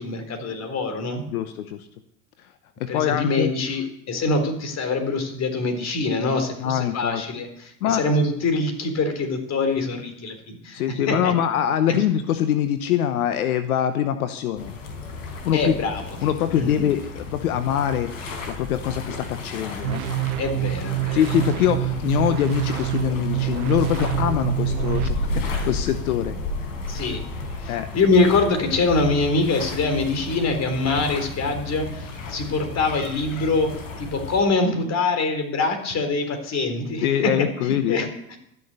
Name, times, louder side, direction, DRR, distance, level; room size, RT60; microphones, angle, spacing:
voice 1, 0.0-1.2 2.9-7.5 7.8-10.8 11.1-11.3 11.9-12.0 15.5-16.0 16.5-16.9 20.4-21.2 26.9-27.2 27.6-33.7 34.0-37.1 37.6-38.4, left 3 dB, 40° left, 6 dB, 3.9 m, -24 dB
voice 2, 1.3-1.9 2.8-3.5 6.6-7.2 7.8-8.0 10.7-14.7 15.4-15.7 16.2-18.1 18.5-20.0 21.1-26.4 27.7-27.9 37.0-38.1, left 10 dB, 90° left, 9 dB, 1.0 m, -23 dB
sound 1, 14.6-34.4, left 2 dB, 70° left, 4.4 m, -33 dB
sound 2, 19.8-25.1, right 16 dB, 90° right, 0.7 m, -26 dB
13.5 x 6.9 x 9.6 m, 0.75 s
hypercardioid pair, 95°, 42 cm